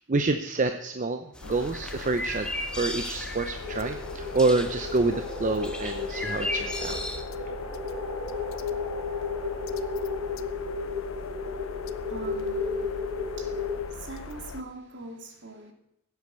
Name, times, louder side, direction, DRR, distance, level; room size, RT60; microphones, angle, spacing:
voice 1, 0.1-2.5 2.7-7.0, right 3 dB, 40° right, 7 dB, 0.7 m, -27 dB
sound 1, 1.3-7.2, left 1 dB, 5° left, 1.2 m, -36 dB
sound 2, 1.4-14.6, left 4 dB, 70° left, 0.7 m, -41 dB
sound 3, 3.6-13.8, left 4 dB, 20° right, 4.7 m, -33 dB
voice 2, 12.1-12.9 13.4-13.5 13.9-15.7, right 3 dB, 60° right, 3 dB, 2.5 m, -42 dB
16.0 x 8.2 x 6.9 m, 0.78 s
head